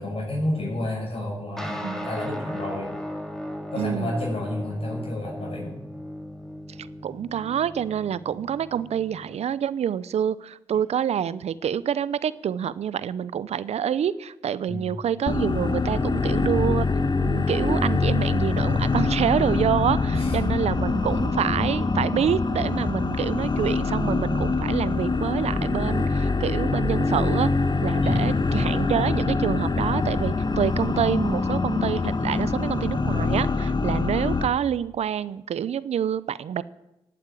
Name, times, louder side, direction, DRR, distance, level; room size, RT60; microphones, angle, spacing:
voice 1, 0.0-2.9 3.7-5.8 14.7-15.0 20.1-20.4 28.0-28.4, left 1 dB, 65° left, -2 dB, 6.3 m, -30 dB
sound 1, 1.6-9.4, equal, 5° left, 2.9 m, -37 dB
voice 2, 3.8-4.1 6.8-16.9 17.2-27.5 27.8-36.6, right 9 dB, 85° right, 18 dB, 0.6 m, -27 dB
sound 2, 15.3-34.5, left 3 dB, 40° left, 1.3 m, -24 dB
15.5 x 8.8 x 9.0 m, 0.92 s
cardioid pair, 45°, 11 cm